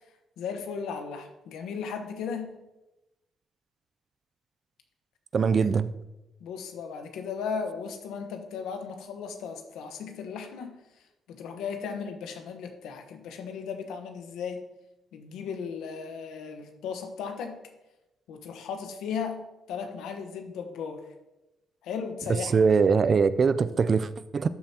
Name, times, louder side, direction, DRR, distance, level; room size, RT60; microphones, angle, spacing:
voice 1, 0.4-2.5 6.4-10.8 11.3-14.6 15.1-17.6 18.3-21.0 21.8-22.5, left 6 dB, 85° left, 1.2 m, -36 dB
voice 2, 5.3-5.9 22.5-24.5, right 5 dB, 45° right, 0.4 m, -22 dB
12.5 x 7.3 x 2.9 m
cardioid pair, 90°, 0 cm